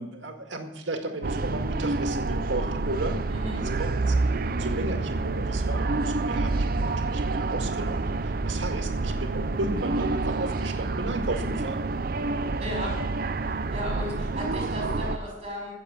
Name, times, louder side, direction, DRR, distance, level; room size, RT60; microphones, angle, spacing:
voice 1, 0.0-3.2 3.5-4.2 4.5-11.9, right 2 dB, 80° right, 5 dB, 2.0 m, -34 dB
sound 1, 1.2-15.2, right 3 dB, 50° right, 0.6 m, -28 dB
voice 2, 3.3-3.6 12.6-13.0 13.4-15.7, equal, 30° right, -1 dB, 6.2 m, -35 dB
16.0 x 7.1 x 8.0 m, 0.97 s
head